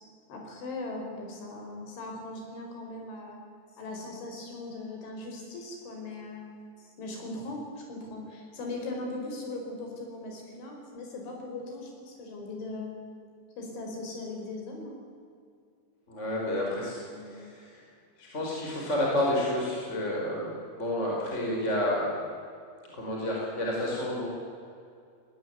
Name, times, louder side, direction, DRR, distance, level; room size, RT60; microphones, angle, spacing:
voice 1, 0.3-3.4 3.8-6.5 7.0-12.9 13.6-15.0 16.6-17.3, left 2 dB, 85° left, 1 dB, 7.3 m, -39 dB
voice 2, 16.1-17.0 17.3-17.8 18.2-22.1 22.9-24.3, left 1 dB, 15° left, -3 dB, 4.9 m, -30 dB
19.5 x 19.0 x 9.6 m, 2.3 s
omnidirectional pair, 5.3 m